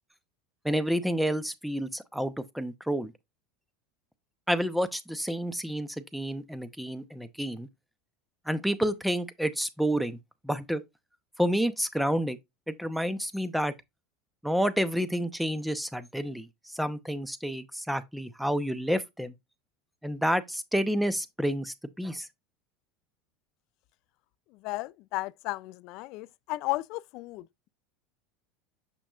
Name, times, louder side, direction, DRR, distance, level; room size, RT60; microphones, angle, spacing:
voice 1, 0.6-3.1 4.5-7.7 8.5-10.2 10.4-10.8 11.4-12.4 12.7-13.7 14.4-19.3 20.0-22.3, equal, ahead, 0.7 m, -29 dB
voice 2, 24.6-27.7, left 20 dB, 60° left, 0.3 m, -34 dB
6.8 x 5.9 x 2.4 m
supercardioid pair, 120°, 0 cm